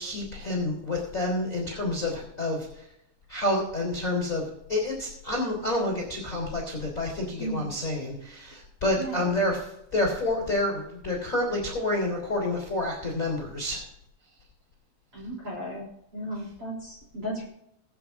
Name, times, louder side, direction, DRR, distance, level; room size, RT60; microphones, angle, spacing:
voice 1, 0.0-2.9 3.3-13.8, left 1 dB, 20° left, 0 dB, 2.7 m, -29 dB
voice 2, 9.0-9.3 15.1-15.9 16.1-17.5, right 1 dB, 30° right, -4 dB, 3.3 m, -35 dB
22.5 x 8.4 x 2.5 m, 0.81 s
omnidirectional pair, 5.7 m